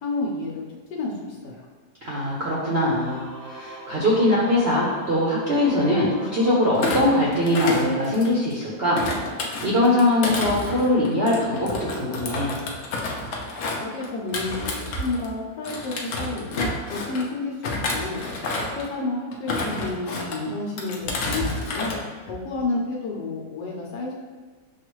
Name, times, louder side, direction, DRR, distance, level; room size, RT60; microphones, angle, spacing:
voice 1, 0.0-1.7 13.6-18.2 18.8-21.9 22.3-24.1, left 3 dB, 80° left, -2 dB, 1.2 m, -30 dB
voice 2, 2.0-9.0 9.6-12.5, left 1 dB, 50° right, -6 dB, 0.8 m, -22 dB
Singing / Musical instrument, 2.9-7.7, right 1 dB, 5° left, 0.6 m, -41 dB
Thump thud, 6.7-8.5 8.9-15.3 15.6-17.2 17.6-18.9 19.3-20.4 20.8-22.0 22.3-22.6, left 2 dB, 60° left, 0.9 m, -30 dB
6.6 x 2.4 x 3.0 m, 1.3 s
omnidirectional pair, 1.8 m